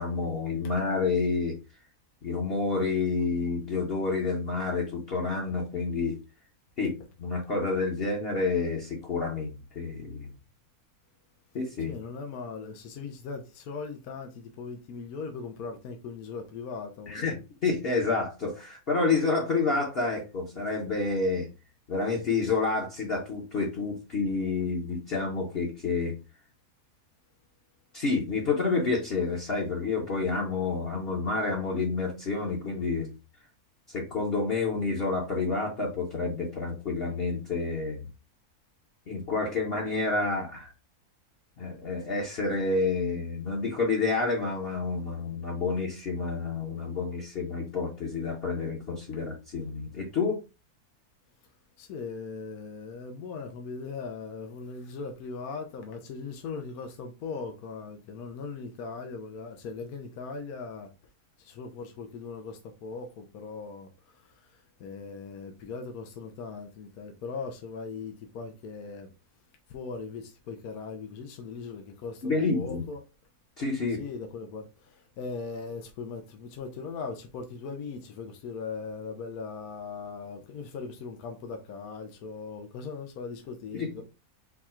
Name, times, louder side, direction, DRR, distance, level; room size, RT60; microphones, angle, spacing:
voice 1, 0.0-1.5 2.2-6.2 6.8-10.3 11.5-11.9 17.1-17.3 17.6-21.5 21.9-26.2 27.9-33.1 33.9-38.0 39.1-40.7 41.6-50.4 72.2-72.8 73.6-74.0 83.7-84.0, left 4 dB, 45° left, 1.1 m, -29 dB
voice 2, 11.9-17.4 46.8-46.9 49.1-49.2 51.8-60.9 61.4-69.1 69.7-73.0 74.0-84.0, left 4 dB, 75° left, 1.1 m, -39 dB
4.6 x 2.3 x 4.3 m
omnidirectional pair, 1.6 m